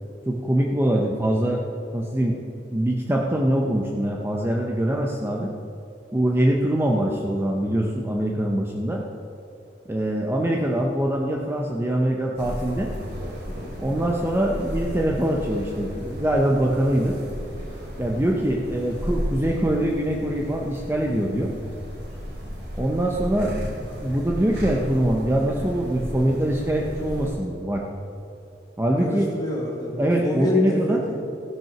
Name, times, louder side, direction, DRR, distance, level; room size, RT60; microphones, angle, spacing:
voice 1, 0.3-1.6 1.9-2.4 2.7-5.5 6.1-9.0 9.9-12.9 13.8-17.2 18.0-21.5 22.7-23.6 24.0-27.8 28.8-29.3 30.0-31.0, right 1 dB, 15° right, -1 dB, 0.7 m, -23 dB
sound 1, 12.4-27.3, equal, 70° right, 3.2 m, -34 dB
voice 2, 29.0-31.2, left 1 dB, 20° left, -4 dB, 2.6 m, -26 dB
15.0 x 6.0 x 5.9 m, 2.6 s
head